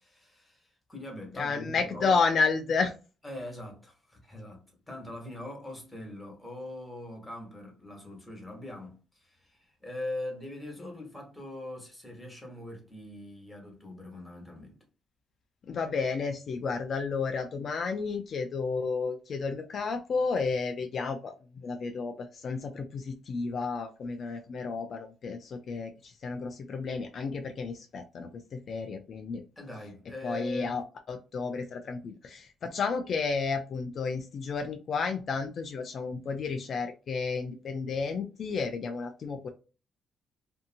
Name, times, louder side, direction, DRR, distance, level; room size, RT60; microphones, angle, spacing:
voice 1, 0.0-2.2 3.2-14.8 29.6-30.9, left 1 dB, 10° left, 1.3 m, -42 dB
voice 2, 1.4-2.9 15.7-21.3 21.6-29.4 30.2-30.8 31.1-39.5, left 4 dB, 55° left, 0.4 m, -32 dB
2.7 x 2.6 x 2.5 m
cardioid pair, 90°, 0 cm